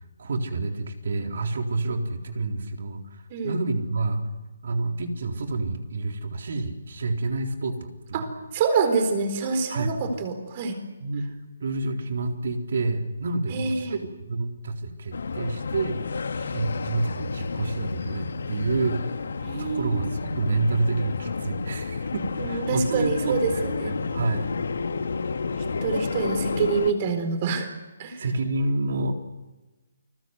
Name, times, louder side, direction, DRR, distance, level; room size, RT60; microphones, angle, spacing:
voice 1, 0.2-4.3 4.6-8.3 9.7-9.9 11.0-16.0 16.5-19.0 19.6-24.5 28.2-29.1, right 2 dB, 60° right, 4 dB, 4.0 m, -28 dB
voice 2, 8.1-10.8 13.5-13.9 19.4-20.1 22.4-24.0 25.8-27.7 28.0-28.2, right 5 dB, 30° right, 8 dB, 4.2 m, -26 dB
sound 1, 15.1-26.9, left 4 dB, 75° left, 2.3 m, -31 dB
29.0 x 21.0 x 8.1 m, 1.1 s
hypercardioid pair, 170°, 0 cm